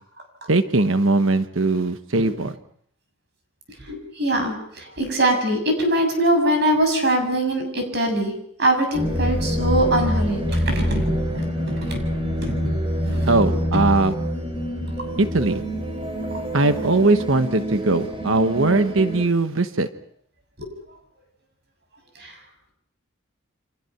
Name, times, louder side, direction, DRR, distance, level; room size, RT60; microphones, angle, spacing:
voice 1, 0.5-2.5 13.3-14.1 15.2-15.6 16.5-19.9, right 2 dB, 70° right, 9 dB, 1.2 m, -20 dB
voice 2, 3.8-8.3 8.6-12.0 12.4-12.8 13.0-13.4 16.3-16.4 20.6-20.7 22.2-22.3, right 1 dB, 50° right, 5 dB, 7.0 m, -23 dB
sound 1, 8.9-19.3, equal, 25° right, 4.4 m, -26 dB
29.0 x 26.0 x 5.9 m, 0.66 s
head